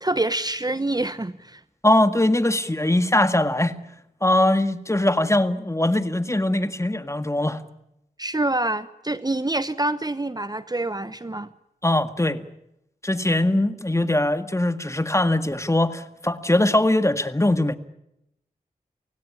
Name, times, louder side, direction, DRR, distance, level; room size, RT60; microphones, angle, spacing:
voice 1, 0.0-1.6 8.2-11.5, right 2 dB, 25° right, 14 dB, 1.0 m, -26 dB
voice 2, 1.8-3.8 4.2-7.6 11.8-12.5 13.0-17.8, left 1 dB, 20° left, 10 dB, 1.8 m, -21 dB
28.5 x 17.0 x 10.0 m, 0.82 s
cardioid pair, 50°, 16 cm